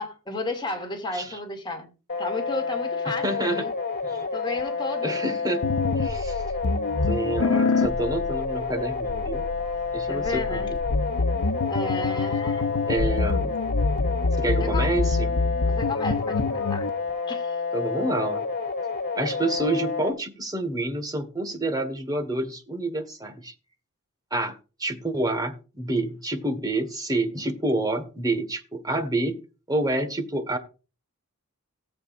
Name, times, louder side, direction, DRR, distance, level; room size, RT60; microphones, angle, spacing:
voice 1, 0.0-1.9 2.2-3.7 4.3-5.2 10.1-10.7 11.7-12.7 14.6-14.9 15.7-16.9 17.3-17.6, left 2 dB, 20° left, 2.5 m, -33 dB
sound 1, 2.1-20.1, left 4 dB, 50° left, 2.5 m, -29 dB
voice 2, 3.2-3.7 4.0-4.2 5.0-6.4 7.0-9.4 9.9-10.8 12.9-13.6 14.4-15.4 17.7-18.4 19.1-23.5 24.3-29.4 29.7-30.6, right 2 dB, 15° right, 1.5 m, -28 dB
sound 2, 5.6-16.9, left 3 dB, 90° left, 0.8 m, -27 dB
18.0 x 8.0 x 2.5 m
head